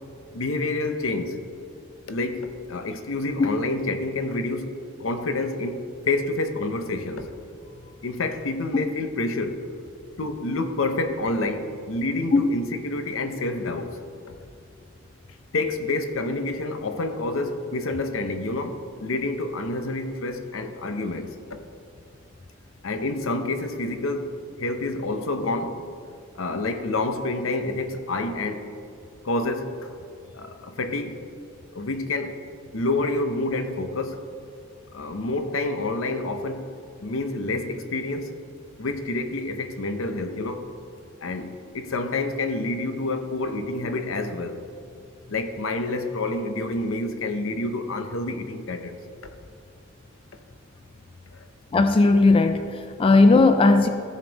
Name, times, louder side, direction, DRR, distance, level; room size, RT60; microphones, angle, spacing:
voice 1, 0.3-1.4 2.1-7.3 8.0-9.6 10.2-13.9 15.5-21.6 22.8-24.3 24.6-25.8 26.3-28.7 29.2-29.9 30.3-31.3 31.7-32.4 32.7-34.2 34.9-36.7 37.0-38.3 38.8-40.7 41.2-44.6 45.3-49.0 51.3-51.4, left 2 dB, 80° left, 8 dB, 0.7 m, -28 dB
voice 2, 51.7-53.9, left 3 dB, 25° left, 8 dB, 0.3 m, -17 dB
14.0 x 5.3 x 4.0 m, 2.4 s
head